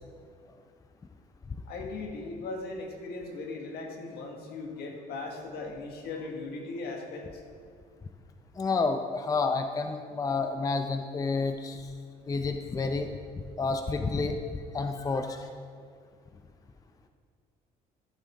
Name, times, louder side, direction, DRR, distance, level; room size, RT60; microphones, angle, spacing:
voice 1, 1.6-7.4, left 3 dB, 70° left, 2 dB, 1.7 m, -38 dB
voice 2, 8.6-11.9 12.3-13.1 13.6-14.4 14.7-15.5, left 4 dB, 20° left, 6 dB, 0.5 m, -29 dB
14.0 x 7.6 x 3.6 m, 2.1 s
cardioid pair, 110°, 17 cm